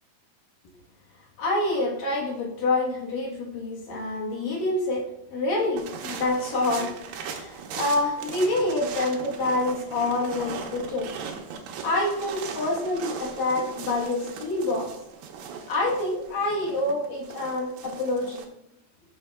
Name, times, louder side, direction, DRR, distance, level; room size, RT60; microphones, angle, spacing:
voice 1, 1.4-5.0 5.3-11.1 11.8-14.9 15.7-18.4, left 2 dB, 65° left, -3 dB, 2.6 m, -27 dB
sound 1, 5.8-18.4, right 6 dB, 75° right, 2.3 m, -38 dB
13.0 x 6.3 x 2.3 m, 0.83 s
omnidirectional pair, 5.1 m